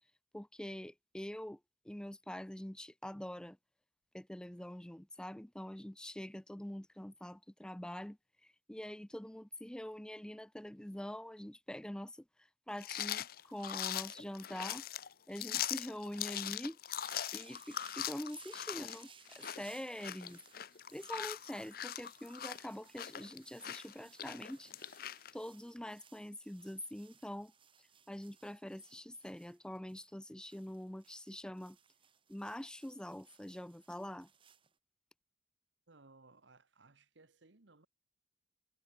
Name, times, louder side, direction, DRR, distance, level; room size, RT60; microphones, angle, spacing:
voice 1, 0.3-1.6 1.9-3.6 4.1-12.2 12.7-14.8 15.3-16.8 17.3-20.4 20.9-24.7 25.3-27.5 28.1-31.8 32.3-34.3, left 1 dB, 5° left, 0.4 m, -45 dB
sound 1, 12.8-25.3, left 11 dB, 50° left, 0.6 m, -41 dB
sound 2, 16.9-34.7, right 7 dB, 30° right, 5.4 m, -63 dB
voice 2, 35.9-37.9, right 3 dB, 75° right, 1.5 m, -62 dB
head